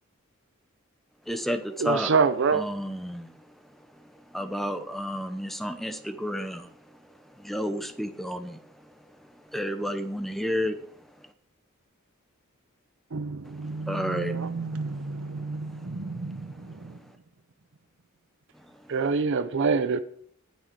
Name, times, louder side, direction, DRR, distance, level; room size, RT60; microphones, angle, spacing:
voice 1, 1.3-2.1 2.5-3.3 4.3-6.7 7.4-8.6 9.5-10.8 13.9-14.4, equal, ahead, 0.9 m, -31 dB
voice 2, 1.8-2.6 18.9-20.0, right 5 dB, 60° right, 0.6 m, -23 dB
voice 3, 13.1-17.0, right 3 dB, 80° right, 0.9 m, -34 dB
19.0 x 6.4 x 4.6 m
head